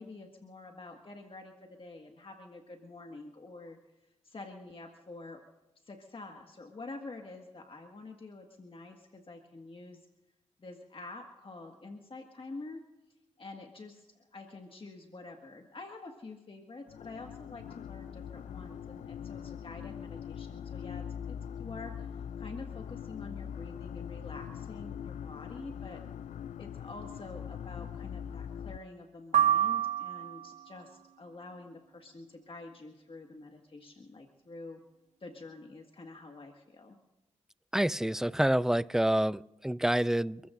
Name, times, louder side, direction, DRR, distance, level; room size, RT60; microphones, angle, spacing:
voice 1, 0.0-3.8 4.2-5.4 5.8-10.0 10.6-12.8 13.4-26.0 26.6-34.8 35.2-37.0, left 3 dB, 50° left, 2 dB, 1.8 m, -47 dB
sound 1, 16.9-28.8, left 8 dB, 85° left, 0.4 m, -42 dB
sound 2, 29.3-30.6, right 10 dB, 75° right, 0.5 m, -27 dB
voice 2, 37.7-40.4, right 1 dB, 5° right, 18 dB, 0.4 m, -27 dB
30.0 x 14.5 x 2.6 m, 1.0 s
cardioid pair, 55°, 12 cm